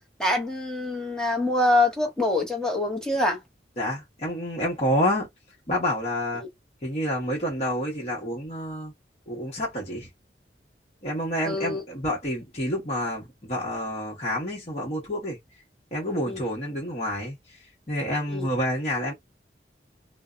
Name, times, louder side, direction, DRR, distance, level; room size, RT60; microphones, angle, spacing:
voice 1, 0.2-3.4 11.4-11.8 16.3-16.4 18.3-18.5, left 2 dB, 5° left, 0.7 m, -25 dB
voice 2, 3.8-5.3 5.7-6.4 6.8-8.9 9.3-10.1 11.0-15.4 15.9-19.1, equal, 35° left, 0.9 m, -28 dB
2.6 x 2.0 x 2.3 m
head